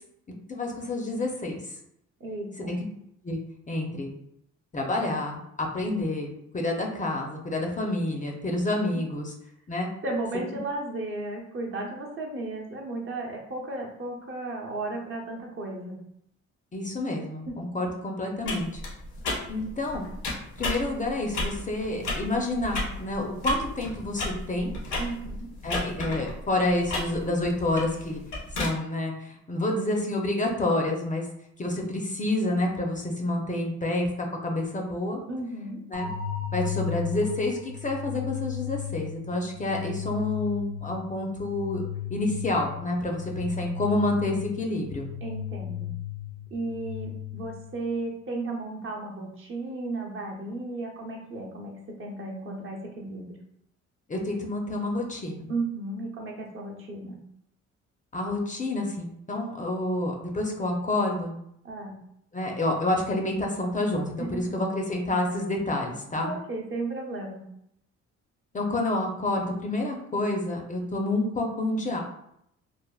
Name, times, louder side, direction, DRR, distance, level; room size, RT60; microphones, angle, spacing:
voice 1, 0.5-1.6 2.7-2.8 3.2-3.4 3.7-4.1 4.7-9.3 9.7-9.9 16.7-18.8 19.5-20.1 20.6-24.7 25.6-28.2 28.6-31.2 31.6-35.2 35.9-36.1 36.5-41.8 42.1-45.1 54.1-55.5 58.1-61.4 62.3-66.3 68.5-72.0, left 2 dB, 25° left, 1 dB, 0.5 m, -28 dB
voice 2, 2.2-2.8 10.0-16.0 17.5-17.6 25.0-25.5 35.3-35.8 45.2-45.9 46.5-53.4 55.5-57.2 61.6-62.0 64.2-64.5 66.2-67.4, right 2 dB, 45° right, 0 dB, 0.7 m, -34 dB
sound 1, 18.4-28.7, left 2 dB, 85° left, 1.3 m, -34 dB
sound 2, 35.9-47.9, left 9 dB, 85° right, 0.5 m, -36 dB
3.3 x 2.1 x 2.3 m, 0.74 s
cardioid pair, 90°, 30 cm